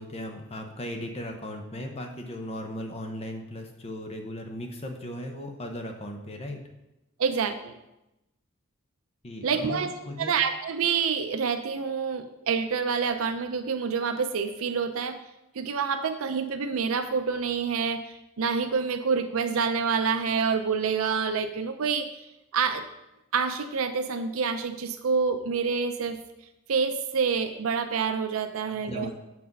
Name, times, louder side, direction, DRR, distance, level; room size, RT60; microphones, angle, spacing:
voice 1, 0.0-6.6 9.2-10.3 28.7-29.1, left 1 dB, 30° left, 3 dB, 0.8 m, -37 dB
voice 2, 7.2-7.8 9.4-9.9 10.2-15.2 15.5-22.1 22.5-22.8 23.3-26.2 26.7-29.1, right 5 dB, 75° right, 8 dB, 0.5 m, -27 dB
7.6 x 6.0 x 5.3 m, 0.93 s
head